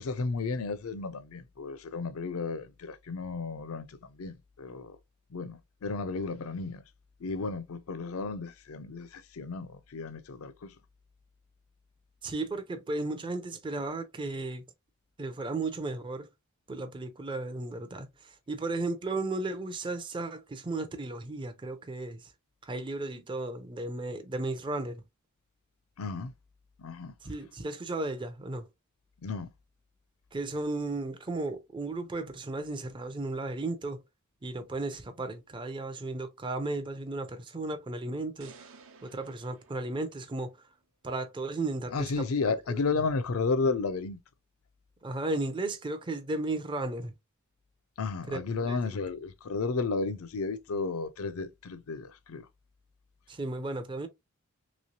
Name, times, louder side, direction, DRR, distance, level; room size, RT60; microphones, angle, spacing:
voice 1, 0.0-5.0 5.3-6.8 7.2-10.8 26.0-26.3 26.8-27.1 29.2-29.5 41.9-44.2 48.0-52.5, left 4 dB, 70° left, 0.5 m, -33 dB
voice 2, 12.2-14.6 15.2-16.3 16.7-22.3 22.6-25.0 27.2-28.7 30.3-34.0 34.4-38.7 39.0-40.7 41.0-42.3 42.7-42.8 45.0-47.1 48.3-48.4 48.7-48.9 53.3-54.1, right 2 dB, 20° right, 0.5 m, -35 dB
sound 1, 38.4-40.7, right 5 dB, 65° right, 0.6 m, -55 dB
3.2 x 3.0 x 2.6 m
head